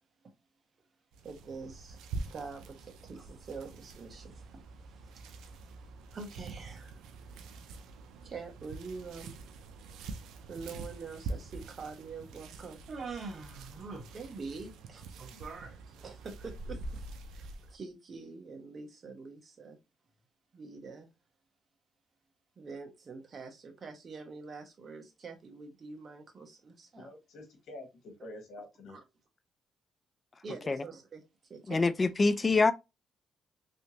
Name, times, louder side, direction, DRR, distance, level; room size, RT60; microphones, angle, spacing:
sound 1, 1.1-17.8, right 3 dB, 85° right, 0.5 m, -45 dB
voice 1, 1.2-2.0 2.3-2.8 3.0-5.8 6.1-7.1 8.2-9.3 10.5-17.0 17.3-19.8 20.5-21.1 22.6-27.1 28.9-29.0 30.4-31.2 31.5-31.9, right 4 dB, 45° right, 1.1 m, -45 dB
voice 2, 27.0-29.0, left 1 dB, 75° left, 1.4 m, -47 dB
voice 3, 31.7-32.7, left 3 dB, 30° left, 0.4 m, -25 dB
3.2 x 2.9 x 2.7 m
cardioid pair, 90°, 0 cm